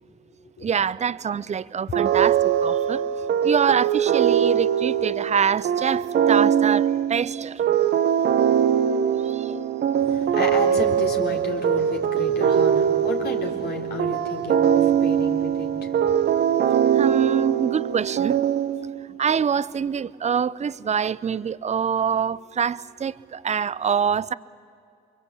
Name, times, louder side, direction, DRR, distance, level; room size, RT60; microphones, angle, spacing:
voice 1, 0.6-3.0 3.4-7.6 9.2-9.6 16.9-18.4 19.0-24.3, right 7 dB, 40° right, 0.7 m, -25 dB
Lofi E-Piano, 1.9-19.1, right 9 dB, 65° right, 1.0 m, -22 dB
voice 2, 10.0-16.4, left 4 dB, 60° left, 3.8 m, -32 dB
28.0 x 23.5 x 8.4 m
supercardioid pair, 60°, 18 cm